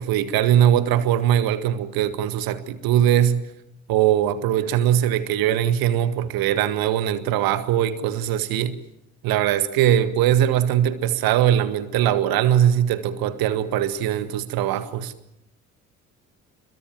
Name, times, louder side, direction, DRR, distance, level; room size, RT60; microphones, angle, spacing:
voice 1, 0.0-3.4 3.9-8.8 9.2-15.1, right 11 dB, 55° right, 1.8 m, -21 dB
27.5 x 22.5 x 7.6 m
figure-of-eight pair, 50°, 41 cm